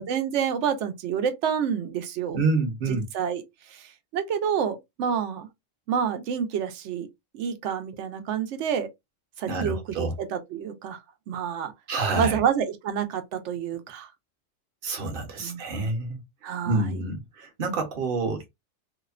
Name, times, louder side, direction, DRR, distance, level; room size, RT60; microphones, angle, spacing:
voice 1, 0.0-2.4 2.9-3.4 3.7-5.5 5.9-7.1 7.3-8.9 9.4-11.0 11.3-11.7 12.2-14.1 15.4-15.9 16.4-17.0, right 7 dB, 80° right, 0.9 m, -28 dB
voice 2, 2.3-3.0 9.5-10.1 11.9-12.4 14.8-16.2 16.6-18.5, right 3 dB, 55° right, 0.9 m, -27 dB
2.7 x 2.1 x 2.4 m
omnidirectional pair, 1.2 m